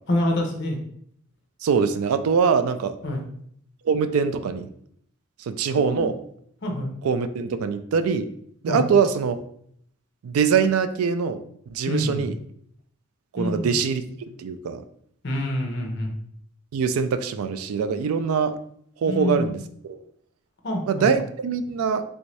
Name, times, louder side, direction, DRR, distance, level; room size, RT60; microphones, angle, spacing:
voice 1, 0.1-0.8 3.0-3.2 5.7-6.1 6.6-6.9 8.7-8.8 11.9-12.2 13.4-13.7 15.2-16.1 19.1-19.5 20.6-21.1, left 1 dB, 50° left, 1 dB, 0.7 m, -26 dB
voice 2, 1.6-3.0 3.9-4.7 5.4-6.1 7.0-8.3 8.6-9.4 10.2-11.4 11.7-12.3 13.3-14.0 14.4-14.8 16.7-18.6 19.0-19.6 20.9-22.0, right 6 dB, 80° right, 11 dB, 0.3 m, -23 dB
3.4 x 2.6 x 3.1 m, 0.67 s
head